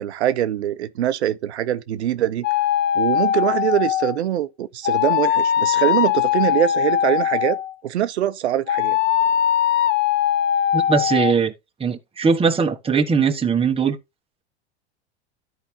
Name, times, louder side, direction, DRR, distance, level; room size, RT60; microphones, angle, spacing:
voice 1, 0.0-2.5 2.9-7.6 7.8-9.0, right 11 dB, 85° right, 0.8 m, -23 dB
sound 1, 2.4-4.2 4.8-7.7 8.7-11.3, left 10 dB, 35° left, 0.4 m, -20 dB
voice 2, 10.7-11.5 11.8-14.0, right 5 dB, 15° right, 1.3 m, -20 dB
13.0 x 4.9 x 2.8 m
hypercardioid pair, 95°, 32 cm